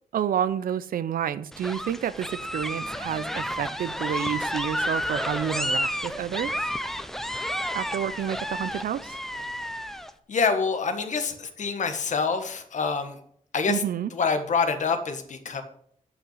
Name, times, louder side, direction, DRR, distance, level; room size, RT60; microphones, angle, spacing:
voice 1, 0.1-6.7 7.7-9.2 13.7-14.1, right 9 dB, 90° right, 16 dB, 0.6 m, -29 dB
sound 1, 1.5-10.1, equal, 5° left, 0.6 m, -31 dB
voice 2, 10.3-13.2 13.5-13.8 14.1-15.6, left 5 dB, 60° left, 8 dB, 1.5 m, -26 dB
9.6 x 5.7 x 7.9 m, 0.64 s
wide cardioid pair, 135°, 14 cm